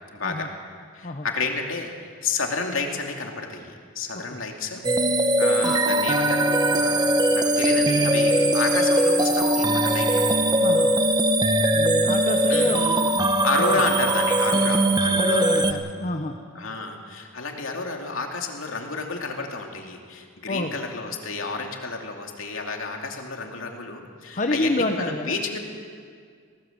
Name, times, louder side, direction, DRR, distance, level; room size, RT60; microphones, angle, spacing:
voice 1, 0.1-0.5 0.9-4.8 5.4-10.2 12.5-12.8 13.4-15.8 16.5-25.6, left 4 dB, 85° left, 2 dB, 2.6 m, -30 dB
sound 1, 4.8-15.7, right 1 dB, 20° right, 1.0 m, -20 dB
voice 2, 10.6-10.9 11.7-13.3 13.7-13.8 15.2-16.4 20.5-20.7 24.3-25.4, left 2 dB, 40° left, 4 dB, 1.1 m, -28 dB
20.0 x 17.5 x 8.1 m, 2.1 s
head